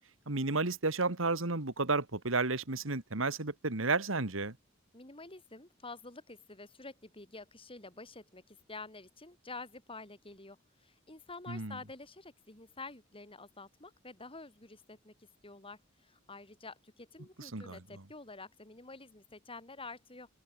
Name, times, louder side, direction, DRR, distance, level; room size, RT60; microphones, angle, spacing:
voice 1, 0.3-4.5 11.5-11.7 17.4-17.8, right 3 dB, 80° right, 2.1 m, -32 dB
voice 2, 4.9-20.3, left 3 dB, 30° left, 6.6 m, -49 dB
open air
head